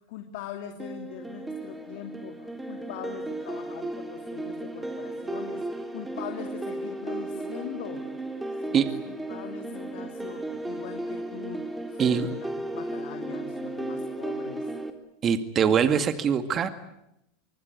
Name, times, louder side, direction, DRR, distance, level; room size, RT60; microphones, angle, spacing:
voice 1, 0.0-8.1 8.6-11.7 11.9-14.7, left 11 dB, 70° left, 5 dB, 2.9 m, -42 dB
sound 1, 0.8-14.9, right 2 dB, 10° right, 3.8 m, -35 dB
voice 2, 12.0-12.3 15.2-16.7, right 7 dB, 35° right, 10 dB, 2.2 m, -23 dB
25.0 x 24.5 x 9.6 m, 0.82 s
supercardioid pair, 115°, 0 cm